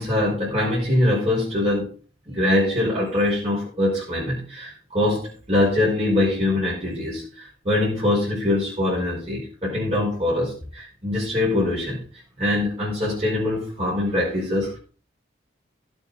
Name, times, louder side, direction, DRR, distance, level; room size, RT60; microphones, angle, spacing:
voice 1, 0.0-1.9 2.3-12.0 12.4-14.8, left 1 dB, 35° right, -6 dB, 5.0 m, -23 dB
17.5 x 7.4 x 4.1 m, 0.38 s
head